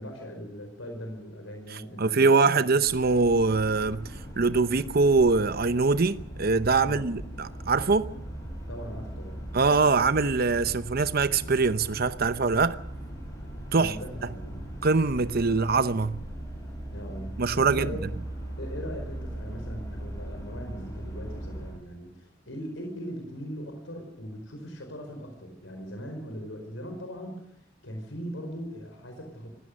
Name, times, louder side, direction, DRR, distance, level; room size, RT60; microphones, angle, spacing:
voice 1, 0.0-2.7 6.8-7.1 8.7-9.5 13.7-14.6 16.9-18.0 18.6-29.5, equal, 85° left, 4.7 m, -40 dB
voice 2, 2.0-8.1 9.5-12.8 13.7-14.0 14.8-16.2 17.4-17.9, right 4 dB, 50° right, 0.8 m, -23 dB
sound 1, 2.8-21.7, right 1 dB, 15° left, 6.3 m, -39 dB
26.0 x 17.5 x 6.5 m
head